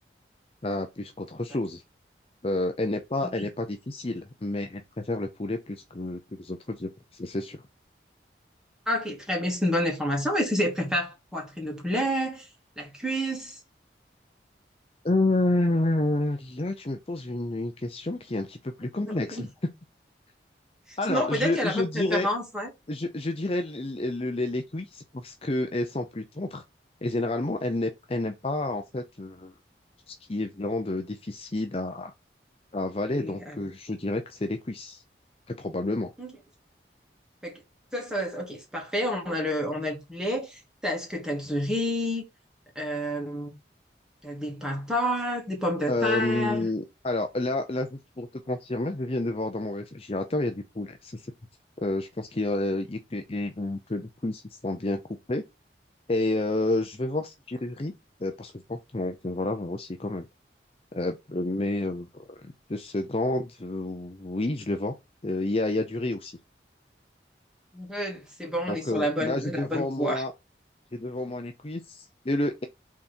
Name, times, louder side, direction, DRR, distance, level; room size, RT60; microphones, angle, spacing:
voice 1, 0.6-1.8 2.4-7.6 15.0-19.5 21.0-22.3 22.9-26.6 27.0-29.5 30.1-32.1 32.7-35.0 35.6-36.1 45.9-51.3 51.8-55.0 55.3-55.4 56.1-57.9 58.2-60.3 60.9-64.9 65.2-66.3 68.7-70.3 70.9-72.7, left 2 dB, 35° left, 0.7 m, -29 dB
voice 2, 8.9-12.5 12.8-13.6 18.9-19.5 20.9-22.7 33.1-33.6 36.2-36.3 37.4-37.6 37.9-42.2 42.7-43.5 44.2-46.7 67.7-70.2, equal, 5° right, 2.6 m, -29 dB
6.1 x 4.2 x 4.4 m
head